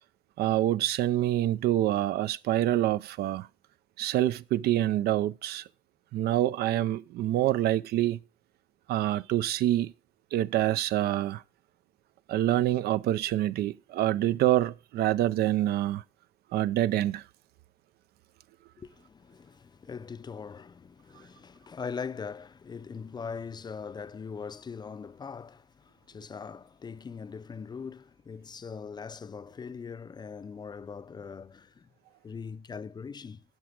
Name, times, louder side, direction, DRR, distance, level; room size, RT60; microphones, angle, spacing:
voice 1, 0.4-3.5 4.0-5.6 6.1-8.2 8.9-9.9 10.3-11.4 12.3-16.0 16.5-17.2, right 13 dB, 70° right, 0.5 m, -26 dB
voice 2, 18.8-31.9 32.2-33.4, left 5 dB, 25° left, 0.5 m, -41 dB
11.0 x 6.0 x 5.9 m
cardioid pair, 110°, 17 cm